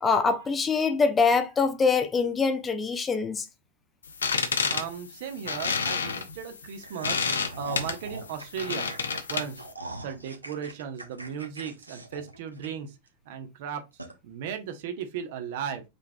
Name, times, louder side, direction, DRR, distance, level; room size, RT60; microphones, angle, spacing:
voice 1, 0.0-3.5, left 5 dB, 20° left, 0.5 m, -24 dB
sound 1, 4.1-9.7, left 5 dB, 70° left, 0.6 m, -30 dB
voice 2, 4.7-7.2 7.6-8.9 9.3-9.7 9.9-13.0 13.2-13.8 14.2-15.8, right 8 dB, 50° right, 0.9 m, -36 dB
sound 2, 6.8-13.1 13.5-13.6 14.0-14.1, right 2 dB, 85° right, 0.8 m, -42 dB
5.2 x 3.5 x 2.3 m
figure-of-eight pair, 90°, 0 cm